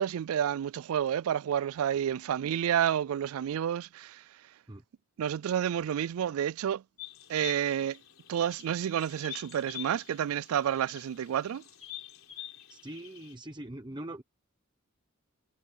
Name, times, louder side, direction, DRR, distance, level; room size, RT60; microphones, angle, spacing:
voice 1, 0.0-4.2 5.2-6.8 7.3-8.0 8.3-11.6, right 9 dB, 85° right, 0.3 m, -30 dB
sound 1, 7.0-13.3, left 14 dB, 70° left, 4.3 m, -47 dB
voice 2, 12.7-14.2, right 1 dB, 20° right, 1.0 m, -42 dB
head